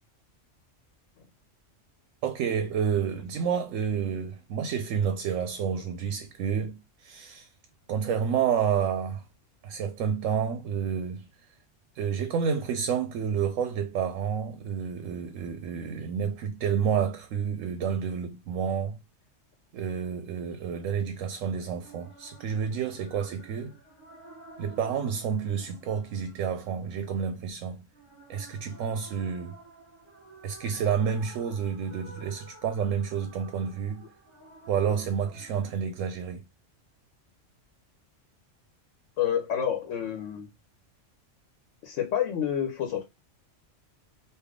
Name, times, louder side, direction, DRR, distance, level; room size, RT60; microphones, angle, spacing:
voice 1, 2.2-7.5 7.9-9.2 9.6-11.2 11.9-19.0 19.7-23.7 24.6-27.8 28.3-29.6 30.4-34.0 34.7-36.4, right 7 dB, 85° right, 0.9 m, -29 dB
sound 1, 21.8-35.8, right 2 dB, 10° left, 1.7 m, -52 dB
voice 2, 39.2-40.5 41.8-43.0, left 9 dB, 80° left, 1.1 m, -28 dB
3.3 x 2.6 x 3.6 m
omnidirectional pair, 1.3 m